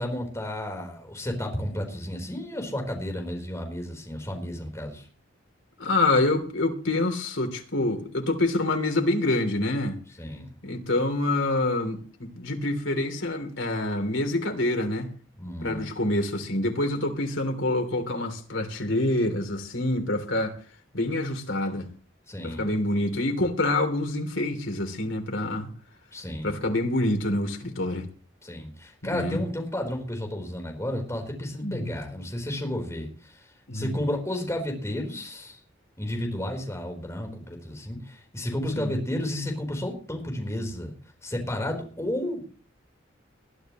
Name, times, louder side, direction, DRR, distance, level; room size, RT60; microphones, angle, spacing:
voice 1, 0.0-5.1 10.2-10.5 15.4-15.9 22.3-22.7 26.1-26.6 28.4-33.5 33.7-35.6 36.0-40.9 41.2-42.4, left 1 dB, 15° left, 4.0 m, -32 dB
voice 2, 5.8-10.0 10.6-15.1 15.6-20.6 20.9-21.9 22.4-25.7 26.4-28.1 29.0-29.4 31.6-31.9 33.7-34.0 38.7-38.9, left 2 dB, 80° left, 3.1 m, -26 dB
21.0 x 12.5 x 3.1 m
head